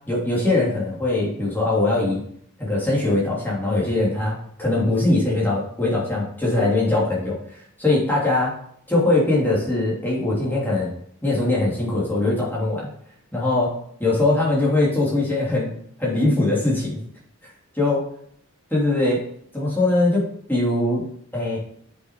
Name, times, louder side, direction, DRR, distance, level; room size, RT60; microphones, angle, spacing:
voice 1, 0.0-2.2 2.6-7.4 7.8-8.6 8.9-10.9 11.2-12.9 13.3-13.7 14.0-17.0 17.7-18.0 18.7-19.2 19.5-21.0 21.3-21.6, left 2 dB, 10° left, -5 dB, 3.0 m, -21 dB
7.6 x 6.1 x 4.7 m, 0.66 s
head